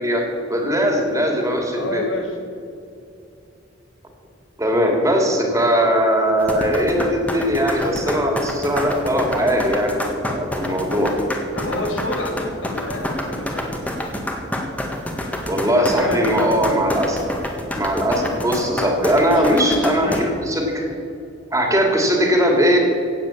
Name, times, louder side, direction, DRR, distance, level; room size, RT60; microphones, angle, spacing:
voice 1, 0.0-2.0 4.6-11.1 15.5-17.2 17.7-20.9 21.5-22.8, equal, 15° right, 1 dB, 2.5 m, -20 dB
voice 2, 1.7-2.4 11.5-13.8 15.6-16.9 18.5-18.9 19.3-20.4, left 1 dB, 90° left, 2 dB, 2.8 m, -28 dB
sound 1, 6.4-20.2, left 1 dB, 10° left, 1.6 m, -27 dB
16.0 x 9.0 x 7.1 m, 2.6 s
head